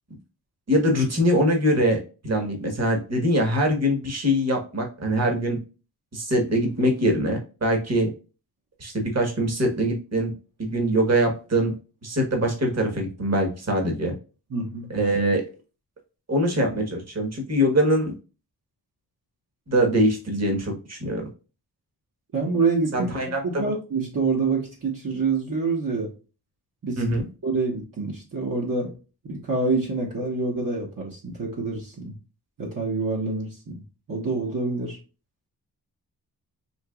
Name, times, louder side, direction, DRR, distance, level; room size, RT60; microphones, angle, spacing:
voice 1, 0.7-5.6 6.1-8.1 8.8-10.3 10.6-11.7 12.0-14.1 14.9-15.4 16.3-18.1 19.7-21.2 22.9-23.6 27.0-27.3, equal, 40° right, 2 dB, 1.3 m, -23 dB
voice 2, 14.5-14.9 22.3-23.1 23.4-26.1 26.8-27.0 27.4-28.9 29.2-32.2 32.6-33.8 34.1-35.0, right 4 dB, 55° right, -2 dB, 1.2 m, -26 dB
4.4 x 2.9 x 2.2 m, 0.33 s
wide cardioid pair, 130°, 38 cm